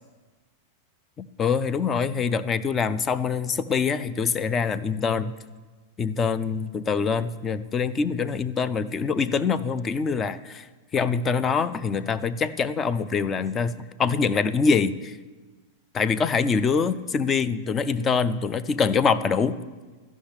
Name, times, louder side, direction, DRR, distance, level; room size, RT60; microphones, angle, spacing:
voice 1, 1.2-5.3 6.0-15.2 15.9-19.6, left 5 dB, 20° left, 14 dB, 0.5 m, -24 dB
13.0 x 6.1 x 9.7 m, 1.3 s
figure-of-eight pair, 90°, 0 cm